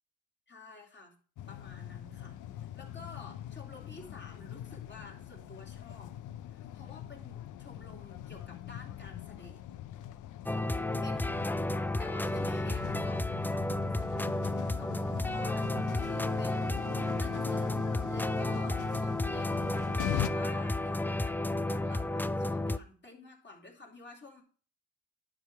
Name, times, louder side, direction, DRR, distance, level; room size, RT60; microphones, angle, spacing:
voice 1, 0.5-1.2 1.5-6.2 6.5-9.7 10.4-11.6 12.0-13.7 14.0-14.3 14.7-24.4, left 3 dB, 35° left, -1 dB, 2.6 m, -51 dB
sound 1, 1.4-20.3, left 12 dB, 80° left, 0.6 m, -42 dB
sound 2, 10.5-22.8, left 2 dB, 5° left, 0.4 m, -32 dB
10.5 x 4.8 x 4.7 m, 0.41 s
cardioid pair, 85°, 30 cm